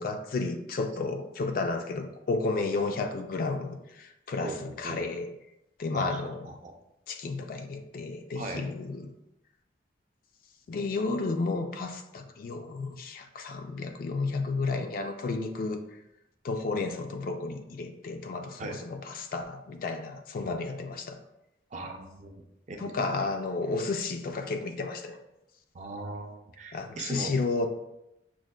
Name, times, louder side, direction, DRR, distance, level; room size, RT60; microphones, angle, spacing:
voice 1, 0.0-5.3 5.8-6.5 7.1-9.1 10.7-15.8 16.4-21.2 22.8-25.2 26.7-27.7, left 3 dB, 50° left, 6 dB, 0.3 m, -32 dB
voice 2, 4.4-5.1 5.9-6.8 8.4-8.6 18.6-18.8 21.7-22.3 22.7-23.1 25.7-27.3, right 2 dB, 40° right, 3 dB, 0.4 m, -39 dB
6.0 x 2.1 x 2.2 m, 0.87 s
head